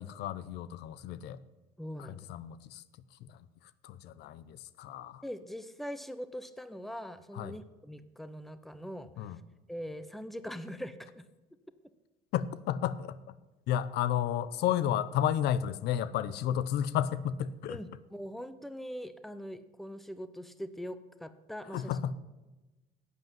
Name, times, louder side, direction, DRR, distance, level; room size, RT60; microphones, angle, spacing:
voice 1, 0.0-1.4 2.0-2.8 3.2-3.4 3.8-5.2 7.3-7.6 9.2-9.4 12.3-13.2 13.7-17.8 21.7-22.2, left 10 dB, 80° left, 16 dB, 0.6 m, -32 dB
voice 2, 1.8-2.3 5.2-9.4 9.7-11.2 17.7-22.0, equal, ahead, 13 dB, 0.8 m, -42 dB
10.5 x 8.4 x 7.5 m, 1.1 s
cardioid pair, 110°, 17 cm